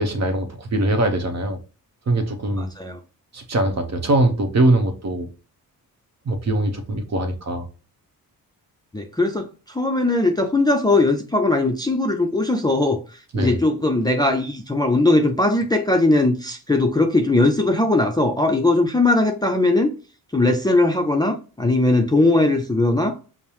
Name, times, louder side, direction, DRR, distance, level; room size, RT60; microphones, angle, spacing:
voice 1, 0.0-1.6 2.1-2.7 3.3-5.3 6.2-7.7 13.3-13.6, right 1 dB, 45° right, 0.9 m, -22 dB
voice 2, 2.6-3.0 8.9-13.0 13.3-19.9 20.3-23.2, left 2 dB, 10° left, 0.5 m, -19 dB
5.2 x 2.1 x 2.9 m
cardioid pair, 75°, 37 cm